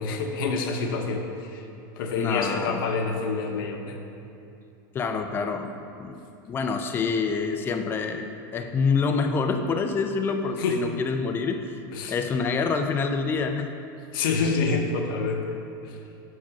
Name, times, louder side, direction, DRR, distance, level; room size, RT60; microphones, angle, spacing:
voice 1, 0.0-1.6 2.0-4.0 10.6-10.8 11.9-12.2 14.1-15.6 15.8-16.0, left 4 dB, 75° left, 3 dB, 0.9 m, -27 dB
voice 2, 2.2-2.8 4.9-6.2 6.5-11.8 12.1-13.7, left 5 dB, 20° left, 6 dB, 0.4 m, -27 dB
5.8 x 4.8 x 5.8 m, 2.6 s
supercardioid pair, 155°, 12 cm